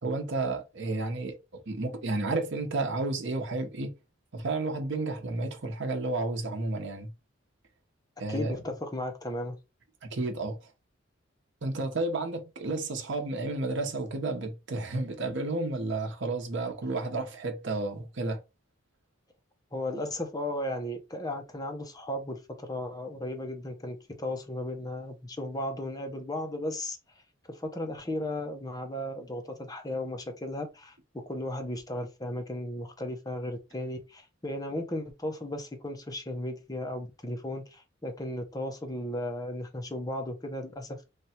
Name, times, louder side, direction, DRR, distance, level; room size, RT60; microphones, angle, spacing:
voice 1, 0.0-1.4 1.7-3.9 4.3-7.1 8.2-8.6 10.0-10.6 11.6-18.4, right 2 dB, 65° right, 0.9 m, -31 dB
voice 2, 8.3-9.6 19.7-27.0 27.5-41.0, left 1 dB, 20° left, 0.8 m, -35 dB
3.3 x 2.4 x 4.2 m
head